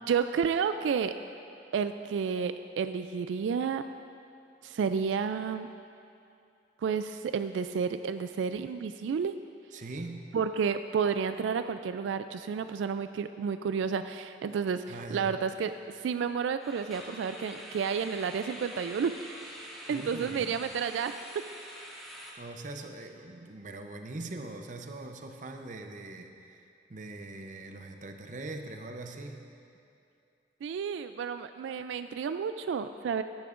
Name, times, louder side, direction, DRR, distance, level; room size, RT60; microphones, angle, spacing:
voice 1, 0.1-1.1 1.7-3.8 4.6-5.7 6.8-9.3 10.3-14.8 15.1-15.7 16.0-19.1 19.9-21.1 30.6-33.2, right 6 dB, 90° right, 10 dB, 0.3 m, -31 dB
voice 2, 9.7-10.3 14.9-15.4 19.6-20.6 21.9-29.4, right 2 dB, 45° right, 5 dB, 0.7 m, -42 dB
sound 1, 10.4-10.7 11.0-11.2 11.6-11.7 16.6-22.3, equal, ahead, 1.4 m, -46 dB
16.0 x 10.5 x 2.5 m, 2.6 s
head